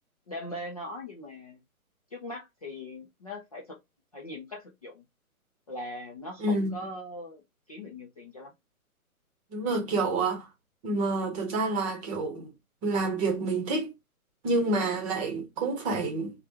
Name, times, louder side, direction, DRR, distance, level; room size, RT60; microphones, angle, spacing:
voice 1, 0.3-1.6 2.1-3.8 4.1-5.0 5.7-7.4 7.7-8.5, left 1 dB, 25° left, 0.4 m, -40 dB
voice 2, 6.4-6.8 9.5-10.5 10.8-12.5 12.8-13.9 14.4-16.3, right 3 dB, 25° right, 1.0 m, -28 dB
3.2 x 2.3 x 2.7 m
figure-of-eight pair, 130°, 44 cm